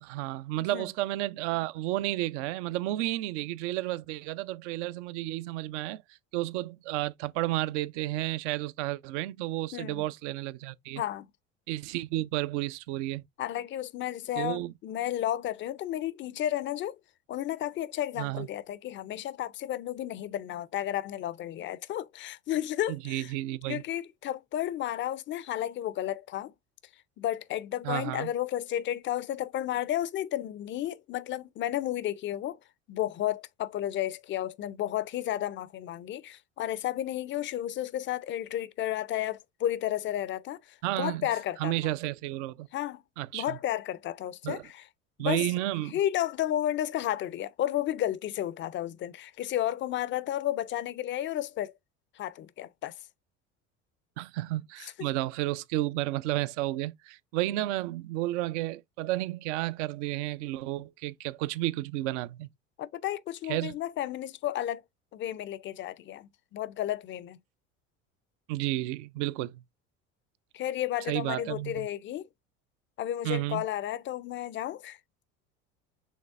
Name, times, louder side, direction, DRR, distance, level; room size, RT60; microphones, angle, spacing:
voice 1, 0.0-6.0 6.3-11.0 11.7-13.2 14.4-14.7 18.2-18.5 22.9-23.8 27.8-28.3 40.8-41.3 41.6-42.7 43.2-43.6 44.4-44.6 45.2-46.0 54.2-62.5 63.5-63.8 68.5-69.6 71.1-71.9 73.2-73.6, right 16 dB, 65° right, 0.5 m, -32 dB
voice 2, 9.7-10.0 11.0-11.3 13.4-17.0 17.3-23.3 23.7-26.5 27.2-32.6 32.9-40.6 40.9-41.7 42.7-43.0 43.3-44.9 45.2-45.5 45.9-51.7 52.2-52.9 54.8-55.1 62.8-64.8 65.1-67.4 70.5-72.3 73.0-75.0, left 12 dB, 30° left, 0.4 m, -32 dB
6.4 x 3.2 x 2.4 m
hypercardioid pair, 70°, 39 cm